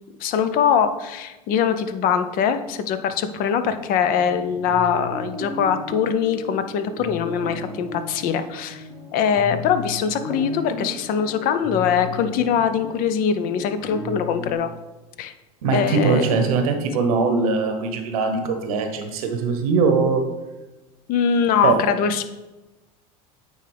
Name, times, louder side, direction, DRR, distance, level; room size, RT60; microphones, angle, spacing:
voice 1, 0.2-8.8 9.1-14.7 15.2-15.3 15.7-16.5 21.1-22.2, left 7 dB, 55° left, 10 dB, 0.6 m, -22 dB
sound 1, 4.0-14.5, left 3 dB, 80° left, 1.9 m, -35 dB
voice 2, 15.6-20.2 21.6-21.8, right 4 dB, 85° right, 6 dB, 1.0 m, -21 dB
9.0 x 3.9 x 3.4 m, 1.1 s
supercardioid pair, 100°, 18 cm